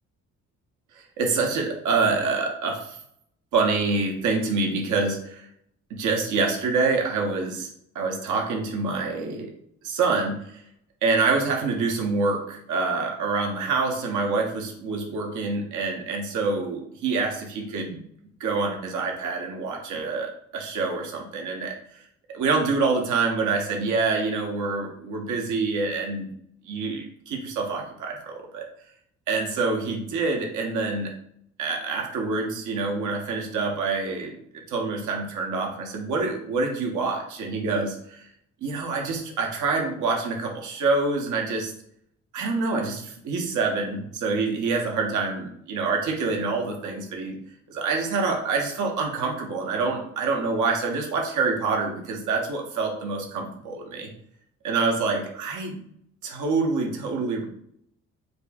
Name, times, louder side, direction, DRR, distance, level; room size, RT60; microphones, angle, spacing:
voice 1, 1.0-3.0 3.5-5.4 5.9-7.7 7.9-9.5 9.8-10.4 11.0-18.0 18.4-22.0 22.3-26.3 26.6-28.6 29.3-31.1 31.6-34.3 34.7-38.3 38.6-41.7 42.3-47.4 47.7-54.1 54.6-55.8 56.2-57.4, right 4 dB, 75° right, 1 dB, 0.9 m, -26 dB
5.1 x 2.5 x 2.3 m, 0.70 s
cardioid pair, 90°, 30 cm